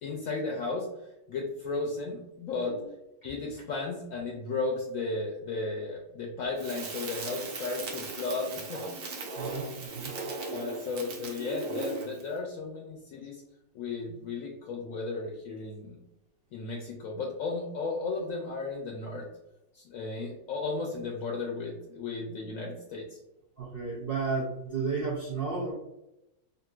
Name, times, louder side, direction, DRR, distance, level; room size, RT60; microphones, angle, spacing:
voice 1, 0.0-0.9 1.3-2.8 3.2-8.8 10.5-13.4 13.7-16.0 16.5-19.3 19.7-23.2, left 3 dB, 70° left, 0 dB, 0.9 m, -34 dB
Crackle, 6.6-12.3, right 3 dB, 85° right, 1.3 m, -38 dB
voice 2, 9.3-10.2 23.6-25.7, right 4 dB, 65° right, -4 dB, 0.5 m, -33 dB
3.7 x 2.5 x 2.3 m, 0.90 s
omnidirectional pair, 1.6 m